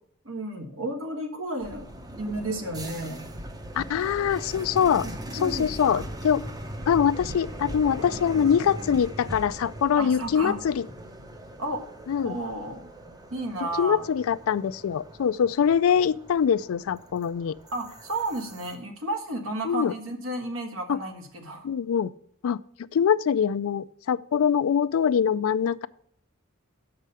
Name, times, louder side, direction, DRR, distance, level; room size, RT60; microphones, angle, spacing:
voice 1, 0.2-3.2 5.0-6.0 9.9-10.6 11.6-11.9 12.2-12.9 13.3-14.0 17.7-21.7, right 1 dB, 70° right, 5 dB, 1.4 m, -32 dB
sound 1, 1.6-18.7, right 1 dB, 20° right, 0.7 m, -40 dB
voice 2, 3.8-5.1 5.4-6.4 6.9-10.9 12.1-12.3 13.8-17.5 19.6-19.9 20.9-21.0 21.6-22.1 22.4-22.6 22.9-25.9, left 7 dB, 80° left, 17 dB, 0.3 m, -23 dB
6.5 x 4.9 x 6.7 m, 0.67 s
head